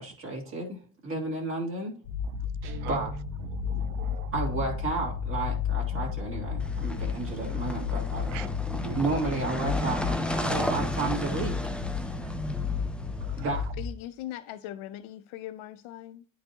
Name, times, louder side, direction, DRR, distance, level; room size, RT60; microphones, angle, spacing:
voice 1, 0.0-1.9 2.9-3.1 4.3-8.3 8.9-10.0 10.5-11.8 13.4-13.6, right 3 dB, 25° right, 2.3 m, -32 dB
sound 1, 2.0-13.8, left 6 dB, 60° left, 2.0 m, -32 dB
Guitar, 2.6-3.8, right 6 dB, 50° right, 1.2 m, -43 dB
voice 2, 2.8-3.1 3.4-5.2 5.7-6.5 7.0-7.5 8.2-9.0 10.1-11.1 12.2-12.3 13.2-13.7, right 15 dB, 80° right, 0.7 m, -43 dB
sound 2, 6.6-13.6, left 1 dB, 5° left, 0.3 m, -34 dB
voice 3, 13.8-16.3, left 13 dB, 85° left, 0.6 m, -40 dB
11.0 x 5.0 x 2.8 m
cardioid pair, 170°, 47 cm